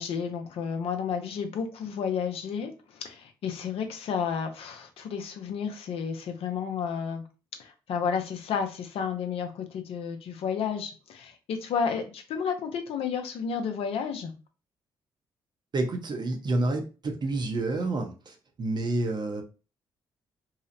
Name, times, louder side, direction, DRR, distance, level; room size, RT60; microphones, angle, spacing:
voice 1, 0.0-7.2 7.6-14.3, left 6 dB, 65° left, 5 dB, 0.5 m, -31 dB
voice 2, 15.7-19.4, right 2 dB, 45° right, 4 dB, 0.7 m, -29 dB
2.7 x 2.0 x 2.6 m, 0.33 s
supercardioid pair, 55°, 11 cm